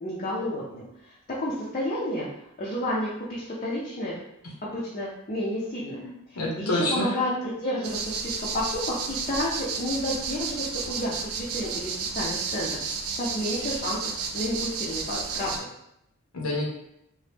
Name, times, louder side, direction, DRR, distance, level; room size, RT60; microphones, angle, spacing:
voice 1, 0.0-2.3 2.6-4.2 4.6-6.0 6.3-15.7, left 1 dB, 35° left, -6 dB, 0.5 m, -31 dB
voice 2, 5.9-7.2 16.3-16.7, left 1 dB, 85° left, 0 dB, 0.7 m, -28 dB
sound 1, 7.8-15.6, right 5 dB, 70° right, 0.4 m, -32 dB
2.9 x 2.1 x 3.3 m, 0.80 s
head